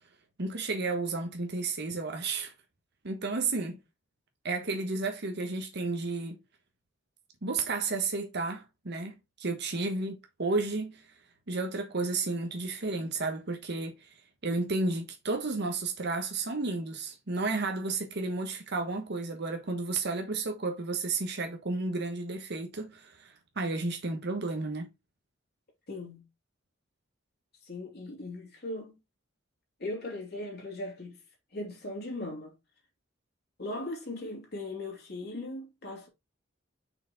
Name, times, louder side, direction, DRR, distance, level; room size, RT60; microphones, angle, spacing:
voice 1, 0.4-2.5 3.0-3.8 4.4-6.4 7.4-11.1 11.5-14.2 14.4-24.9, right 3 dB, 60° right, 1.2 m, -32 dB
voice 2, 25.9-26.3 27.6-29.0 29.8-31.2 31.5-32.5 33.6-36.1, left 2 dB, 55° left, 3.0 m, -38 dB
5.9 x 4.6 x 3.9 m
head